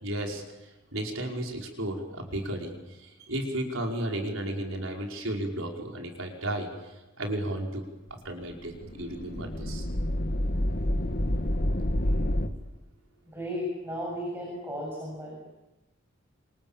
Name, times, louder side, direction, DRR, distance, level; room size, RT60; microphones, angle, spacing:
voice 1, 0.0-7.9 8.2-9.9, right 1 dB, 85° right, 1 dB, 5.3 m, -34 dB
sound 1, 8.5-12.5, left 1 dB, 50° left, 1.9 m, -28 dB
voice 2, 13.3-15.4, equal, 10° right, -1 dB, 7.5 m, -34 dB
29.0 x 28.0 x 7.3 m, 1.0 s
head